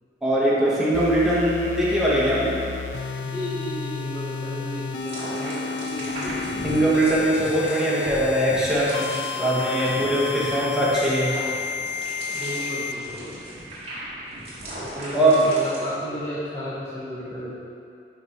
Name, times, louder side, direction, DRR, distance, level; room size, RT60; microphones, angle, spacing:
voice 1, 0.2-2.6 6.6-9.1 9.4-11.4 15.1-15.5, right 1 dB, 5° right, -8 dB, 1.2 m, -21 dB
sound 1, 0.9-12.9, left 4 dB, 90° left, 0.4 m, -32 dB
voice 2, 3.2-7.3 9.3-9.9 10.2-10.4 12.3-13.4 14.8-17.5, equal, 15° left, -10 dB, 0.9 m, -34 dB
sound 2, 5.0-15.9, right 1 dB, 35° right, 1.6 m, -37 dB
5.9 x 5.1 x 4.3 m, 2.5 s
head